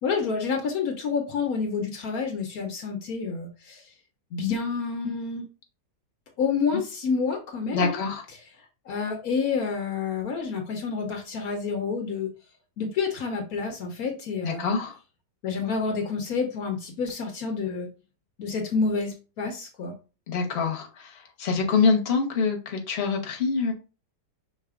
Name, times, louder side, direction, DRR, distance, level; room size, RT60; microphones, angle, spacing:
voice 1, 0.0-3.8 4.3-5.4 6.4-8.0 8.3-8.4 8.9-12.3 12.8-14.7 15.4-17.9 18.4-19.9, left 5 dB, 70° left, 3 dB, 1.2 m, -28 dB
voice 2, 7.7-8.2 14.4-14.9 20.3-20.9 21.4-23.7, left 4 dB, 45° left, 2 dB, 1.1 m, -25 dB
5.6 x 3.8 x 2.4 m, 0.33 s
omnidirectional pair, 1.7 m